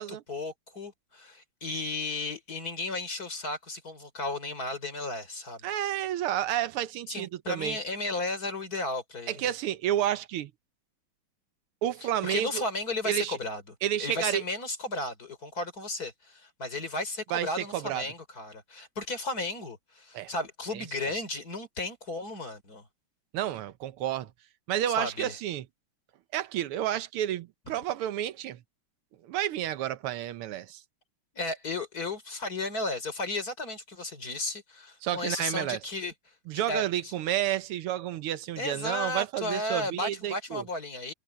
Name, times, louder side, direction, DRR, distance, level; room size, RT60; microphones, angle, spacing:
voice 1, 0.0-5.8 7.1-9.5 12.0-13.7 14.0-22.9 24.9-25.3 31.3-36.1 36.5-37.1 38.6-41.1, left 2 dB, 40° left, 4.5 m, -34 dB
voice 2, 5.6-7.8 9.3-10.5 11.8-12.6 13.0-13.4 13.8-14.4 17.3-17.5 17.7-18.0 20.1-20.3 20.7-20.8 23.3-24.3 24.7-25.6 26.3-28.6 29.2-30.8 35.0-35.8 36.5-40.6, right 12 dB, 80° right, 1.7 m, -30 dB
omnidirectional pair, 2.4 m